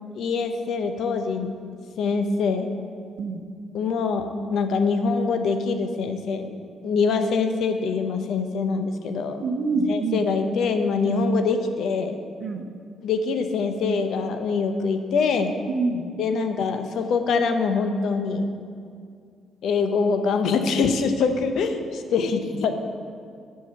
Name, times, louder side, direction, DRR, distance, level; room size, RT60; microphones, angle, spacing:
voice 1, 0.2-1.5 2.0-2.7 3.7-6.5 6.8-9.5 9.9-12.2 13.0-15.5 16.2-18.5 19.6-22.8, left 4 dB, 75° left, 7 dB, 0.6 m, -24 dB
voice 2, 9.4-10.2 11.0-11.2 12.4-12.6 15.7-16.1, right 3 dB, 60° right, 6 dB, 0.6 m, -26 dB
7.2 x 4.7 x 6.9 m, 2.2 s
cardioid pair, 90°, 0 cm